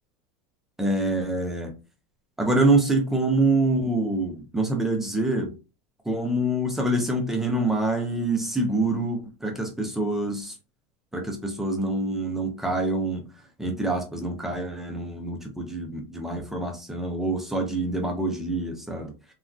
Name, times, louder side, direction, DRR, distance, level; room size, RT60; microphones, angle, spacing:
voice 1, 0.8-1.7 2.4-5.5 6.1-10.5 11.1-13.2 13.6-19.1, right 2 dB, ahead, 0.3 m, -26 dB
3.4 x 2.2 x 2.4 m
supercardioid pair, 175°, 16 cm